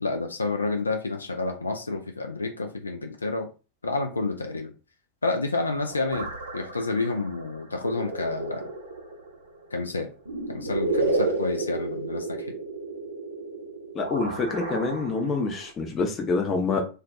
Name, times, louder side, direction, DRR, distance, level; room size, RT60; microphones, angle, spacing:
voice 1, 0.0-3.5 3.8-4.7 5.2-8.7 9.7-10.1 10.5-12.5, left 3 dB, 75° left, 0.3 m, -29 dB
sound 1, 5.6-15.7, right 2 dB, 75° right, 0.6 m, -32 dB
voice 2, 13.9-16.8, left 3 dB, 25° left, 0.6 m, -26 dB
2.2 x 2.2 x 2.5 m
figure-of-eight pair, 90°, 0 cm